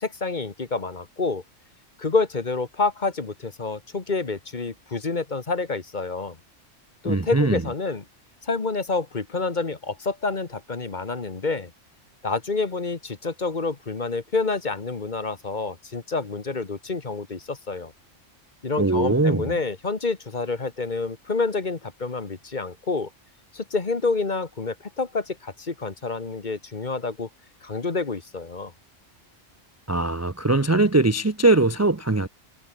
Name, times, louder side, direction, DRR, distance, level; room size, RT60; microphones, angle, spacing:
voice 1, 0.0-1.4 2.0-6.4 7.0-8.0 8.4-11.7 12.2-17.9 18.6-23.1 23.5-27.3 27.6-28.7, left 3 dB, 40° left, 1.6 m, -28 dB
voice 2, 7.0-7.6 18.8-19.6 29.9-32.3, right 2 dB, 20° right, 0.5 m, -21 dB
omnidirectional pair, 1.3 m